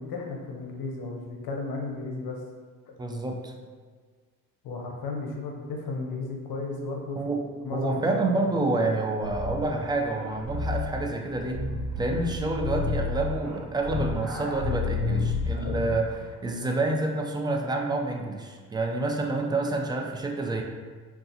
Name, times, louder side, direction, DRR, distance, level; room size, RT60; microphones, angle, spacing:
voice 1, 0.0-2.4 4.6-7.3 7.6-8.6 15.5-15.9 19.2-19.5, left 3 dB, 70° left, 0 dB, 0.7 m, -35 dB
voice 2, 3.0-3.5 7.2-7.4 7.7-11.7 12.0-16.2 16.4-20.6, right 2 dB, 10° right, 2 dB, 0.3 m, -28 dB
sound 1, 9.2-16.1, left 3 dB, 45° right, 1.0 m, -31 dB
3.8 x 2.4 x 2.7 m, 1.6 s
cardioid pair, 90°, 38 cm